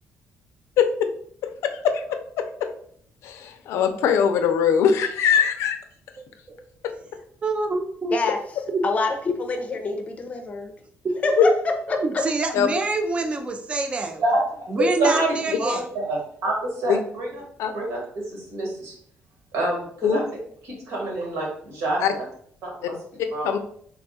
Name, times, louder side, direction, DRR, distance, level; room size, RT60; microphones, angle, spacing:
voice 1, 1.4-2.0 2.4-2.5 3.2-5.8 6.8-6.9 11.4-11.5 12.5-12.7 16.9-17.0 17.6-17.7 20.0-20.2 22.0-22.1 23.4-23.6, left 8 dB, 85° left, 7 dB, 0.5 m, -21 dB
voice 2, 6.2-6.6 7.4-8.2 8.7-8.8 11.0-11.5 11.9-14.2 14.7-15.9, right 3 dB, 25° right, 5 dB, 0.4 m, -26 dB
voice 3, 8.8-10.7 11.2-11.5 11.9-12.0, left 3 dB, 30° left, 5 dB, 0.5 m, -26 dB
voice 4, 14.8-17.3 17.7-18.9 19.5-20.2 20.7-22.2 22.6-22.9 23.3-23.5, right 1 dB, 80° right, -2 dB, 1.6 m, -26 dB
3.4 x 2.3 x 3.9 m, 0.62 s
cardioid pair, 145°, 5 cm